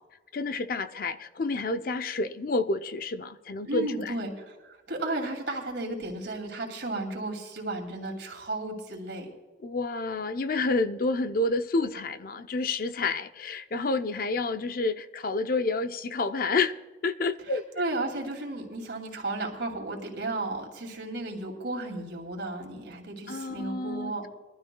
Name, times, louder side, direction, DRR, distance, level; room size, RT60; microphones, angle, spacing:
voice 1, 0.3-4.1 9.6-16.7 17.0-17.6 23.3-24.3, left 3 dB, 55° left, 0.5 m, -29 dB
voice 2, 3.6-9.3 17.5-24.3, right 2 dB, 85° right, 2.6 m, -34 dB
22.0 x 12.5 x 2.3 m
head